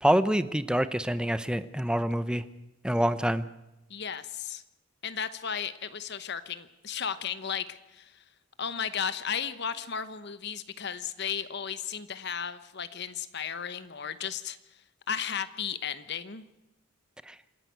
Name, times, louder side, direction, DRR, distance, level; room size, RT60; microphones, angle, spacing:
voice 1, 0.0-2.4 2.8-3.4 17.3-17.4, equal, 5° right, 13 dB, 0.7 m, -26 dB
voice 2, 3.9-4.6 5.0-8.1 8.6-14.6 15.1-16.4, left 7 dB, 55° left, 13 dB, 1.0 m, -34 dB
26.5 x 11.0 x 9.3 m, 0.96 s
head